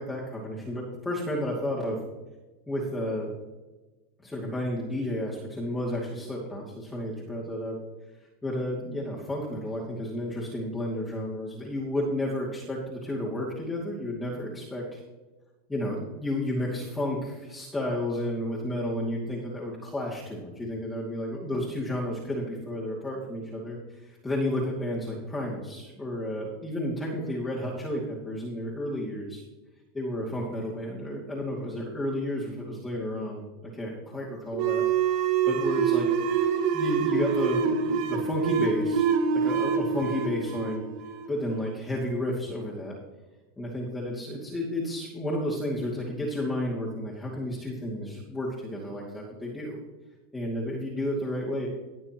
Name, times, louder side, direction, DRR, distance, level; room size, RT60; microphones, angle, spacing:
voice 1, 0.0-2.0 2.7-3.3 4.2-7.8 8.4-15.0 15.7-29.4 29.9-36.1 36.7-39.1 39.3-40.8 41.3-42.9 43.6-49.8 50.3-51.7, left 1 dB, 10° left, -6 dB, 2.6 m, -32 dB
sound 1, 34.5-41.7, right 6 dB, 55° right, 1.4 m, -26 dB
19.0 x 6.7 x 3.1 m, 1.2 s
hypercardioid pair, 115°, 0 cm